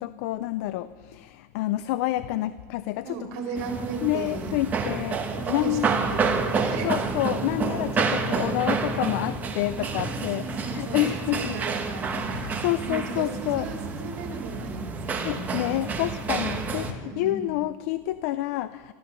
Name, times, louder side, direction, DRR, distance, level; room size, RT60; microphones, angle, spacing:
voice 1, 0.0-3.3 4.0-5.9 6.8-11.6 12.3-13.7 15.1-18.9, left 15 dB, 60° left, 14 dB, 0.4 m, -28 dB
voice 2, 3.0-4.6 5.3-6.3 6.5-6.9 7.2-7.3 9.9-11.0 11.5-12.6 12.8-15.7 17.0-17.5, right 4 dB, 55° right, 0 dB, 4.0 m, -36 dB
sound 1, 3.6-16.9, right 4 dB, 20° right, 1.1 m, -29 dB
14.5 x 13.0 x 6.8 m, 1.5 s
cardioid pair, 180°, 10 cm